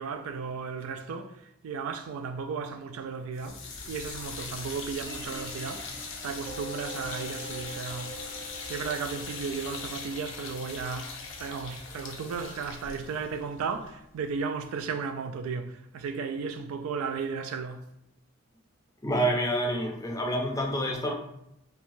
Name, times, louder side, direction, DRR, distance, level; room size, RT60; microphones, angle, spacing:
voice 1, 0.0-3.6 3.9-5.9 6.2-8.1 8.6-17.9, right 5 dB, 90° right, 0.3 m, -35 dB
sound 1, 3.3-14.4, left 4 dB, 65° left, 0.5 m, -41 dB
sound 2, 5.0-11.9, right 1 dB, 70° right, 1.0 m, -45 dB
voice 2, 19.0-21.1, right 1 dB, 15° left, 0.5 m, -27 dB
3.0 x 2.2 x 2.6 m
head